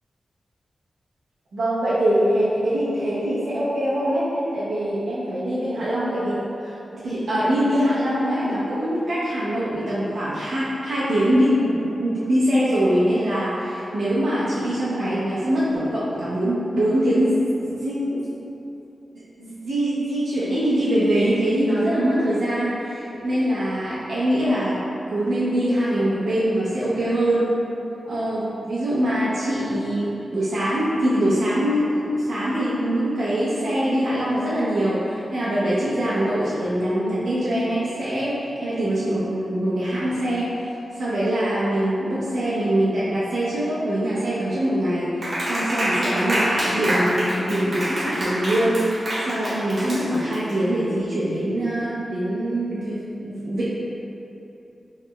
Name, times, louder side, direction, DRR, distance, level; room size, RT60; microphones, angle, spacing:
voice 1, 1.5-18.2 19.4-24.8 25.1-27.6 28.1-40.5 40.9-53.7, right 1 dB, 75° right, -10 dB, 0.6 m, -23 dB
Clapping, 45.2-50.5, equal, 50° right, 1.0 m, -26 dB
4.7 x 3.2 x 2.2 m, 2.9 s
wide cardioid pair, 150°, 0 cm